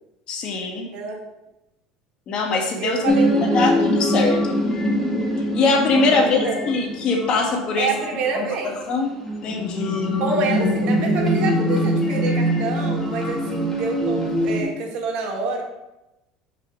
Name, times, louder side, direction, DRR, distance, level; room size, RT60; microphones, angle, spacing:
voice 1, 0.3-0.9 2.3-4.6 5.5-7.9 8.9-9.1 9.4-10.1, left 3 dB, 50° left, 3 dB, 1.5 m, -22 dB
voice 2, 2.8-3.8 6.1-6.8 7.8-8.7 10.2-15.6, right 4 dB, 55° right, 1 dB, 1.8 m, -27 dB
sound 1, 3.0-14.6, equal, 20° left, 1.7 m, -23 dB
5.6 x 5.2 x 5.1 m, 0.96 s
supercardioid pair, 105°, 2 cm